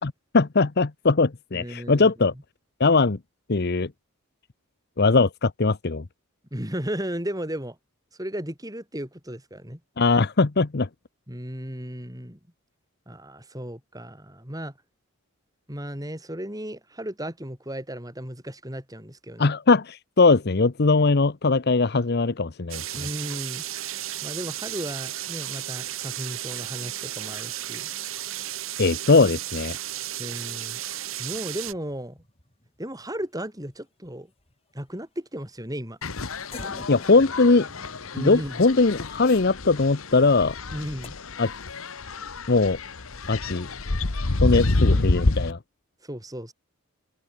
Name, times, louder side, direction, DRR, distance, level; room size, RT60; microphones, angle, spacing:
voice 1, 0.0-2.3 2.8-3.2 3.5-3.9 5.0-6.0 10.0-10.9 19.4-22.8 28.8-29.8 36.9-37.7 38.2-40.5 41.4-41.5 42.5-42.8 43.3-43.7 44.4-45.6, left 3 dB, 50° left, 0.8 m, -20 dB
voice 2, 1.5-2.1 6.5-7.8 8.2-9.8 11.3-12.4 13.1-14.7 15.7-19.5 22.9-23.6 24.2-27.9 30.2-30.8 31.2-32.2 32.8-34.3 34.7-36.0 38.1-38.6 40.7-41.1 44.5-45.5 46.0-46.5, equal, 15° right, 7.0 m, -35 dB
sound 1, 22.7-31.7, right 13 dB, 65° right, 1.4 m, -34 dB
sound 2, 31.2-34.1 34.3-34.9 35.6-35.7 36.5-41.1, left 2 dB, 25° left, 3.7 m, -47 dB
sound 3, 36.0-45.5, left 2 dB, 75° left, 1.3 m, -28 dB
head